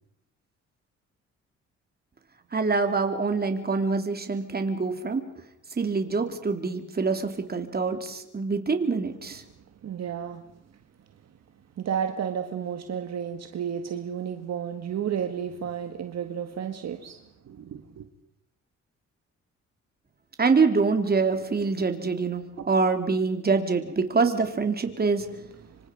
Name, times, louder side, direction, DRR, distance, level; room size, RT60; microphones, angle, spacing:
voice 1, 2.5-5.2 5.8-9.4 20.4-25.2, right 4 dB, 30° right, 3.2 m, -25 dB
voice 2, 9.8-10.4 11.8-18.1 25.7-25.8, right 8 dB, 60° right, 1.8 m, -32 dB
27.0 x 25.0 x 5.3 m
cardioid pair, 90°, 30 cm